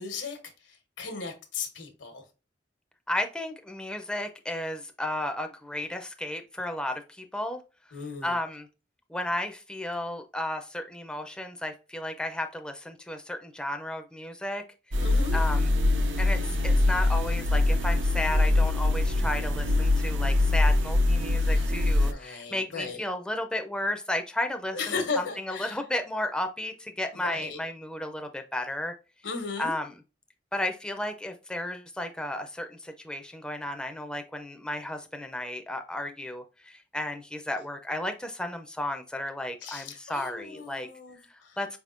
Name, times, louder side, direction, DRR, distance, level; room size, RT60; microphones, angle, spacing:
voice 1, 0.0-2.2 7.9-8.3 15.0-15.4 21.4-23.0 24.7-25.8 27.1-27.6 29.2-29.7 39.6-41.6, left 4 dB, 85° left, 1.1 m, -36 dB
voice 2, 3.1-7.6 8.2-8.7 9.1-14.6 15.3-15.7 16.2-24.8 25.5-28.9 29.6-29.9 30.5-40.9 41.6-41.8, left 1 dB, 5° left, 0.4 m, -33 dB
sound 1, 14.9-22.1, left 2 dB, 85° right, 0.7 m, -23 dB
4.8 x 3.5 x 2.5 m
head